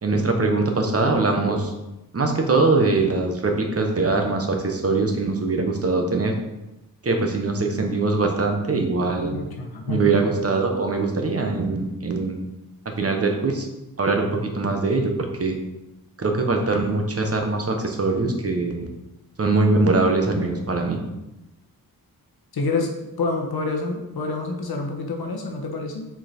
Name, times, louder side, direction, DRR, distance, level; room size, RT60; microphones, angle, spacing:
voice 1, 0.0-1.7 2.1-6.3 7.0-9.3 9.9-12.4 13.0-13.7 14.0-15.6 16.2-18.9 19.4-21.0, right 3 dB, 40° right, 3 dB, 1.1 m, -22 dB
voice 2, 9.3-10.1 22.5-26.1, left 3 dB, 85° left, 3 dB, 1.2 m, -27 dB
5.8 x 4.7 x 4.4 m, 0.95 s
wide cardioid pair, 105°, 36 cm